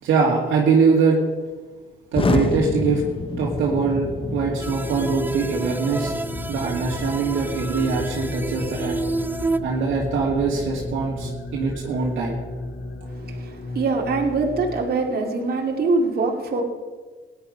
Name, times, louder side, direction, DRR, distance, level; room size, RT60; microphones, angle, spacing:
voice 1, 0.0-1.2 2.1-3.0 3.4-6.1 6.5-9.0 9.6-12.4, right 5 dB, 80° right, -4 dB, 2.3 m, -22 dB
Explosion, 2.1-12.1, left 4 dB, 25° left, 0.9 m, -31 dB
sound 1, 3.4-14.8, left 2 dB, 60° left, 2.0 m, -36 dB
sound 2, 4.6-9.6, right 3 dB, 10° right, 0.7 m, -30 dB
voice 2, 13.1-16.6, right 3 dB, 50° right, 1 dB, 2.5 m, -23 dB
17.0 x 10.5 x 5.5 m, 1.4 s
cardioid pair, 90°, 20 cm